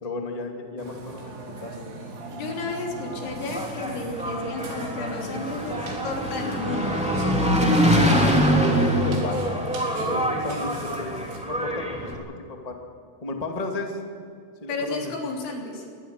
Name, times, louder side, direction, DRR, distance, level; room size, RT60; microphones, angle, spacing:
voice 1, 0.0-1.3 1.6-1.9 8.2-9.4 10.1-12.2 12.6-12.8 13.2-14.0 14.6-15.1, left 2 dB, 45° left, 2 dB, 0.4 m, -33 dB
Burping eructation, 0.8-11.4, right 2 dB, 90° right, 6.2 m, -36 dB
voice 2, 2.3-6.9 14.7-15.9, left 3 dB, 75° left, 0 dB, 5.9 m, -32 dB
Engine, 3.3-12.1, equal, ahead, 2.3 m, -24 dB
25.0 x 20.0 x 6.7 m, 2.4 s
omnidirectional pair, 5.4 m